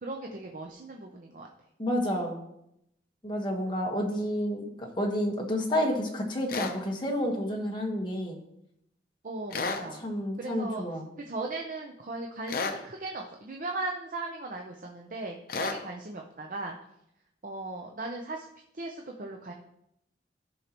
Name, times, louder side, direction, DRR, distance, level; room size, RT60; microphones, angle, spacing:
voice 1, 0.0-1.5 9.2-10.0 10.4-10.8 11.3-16.8 17.4-18.5 18.7-19.5, right 2 dB, 50° right, 1 dB, 0.7 m, -37 dB
voice 2, 1.8-2.4 3.2-8.4 10.0-11.0, equal, 25° left, 0 dB, 1.4 m, -30 dB
sound 1, 6.5-6.8 9.5-9.9 12.5-12.8 15.5-15.8, left 4 dB, 55° left, 0.7 m, -31 dB
13.5 x 5.5 x 3.0 m, 0.80 s
head